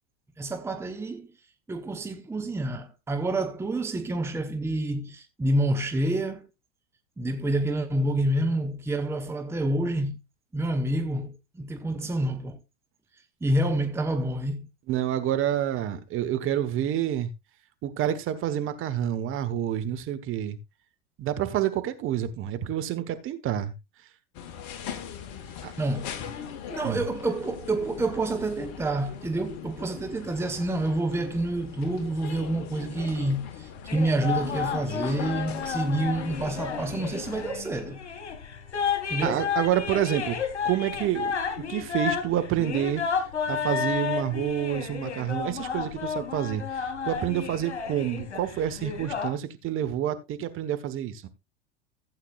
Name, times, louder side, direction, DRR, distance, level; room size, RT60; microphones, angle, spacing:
voice 1, 0.4-1.3 1.7-6.5 7.2-10.2 10.5-12.6 13.4-14.7 25.8-26.1 26.7-38.0 39.1-39.4, right 1 dB, 5° right, 1.0 m, -28 dB
voice 2, 14.9-17.3 17.8-20.6 21.2-23.7 25.6-25.7 26.8-27.0 39.2-40.4 40.6-41.4 41.7-43.0 43.5-51.3, right 11 dB, 35° right, 1.4 m, -28 dB
sound 1, 24.3-37.5, left 8 dB, 50° left, 1.6 m, -40 dB
sound 2, 33.9-49.3, left 6 dB, 75° left, 2.4 m, -32 dB
15.5 x 8.2 x 2.5 m
figure-of-eight pair, 90°, 35 cm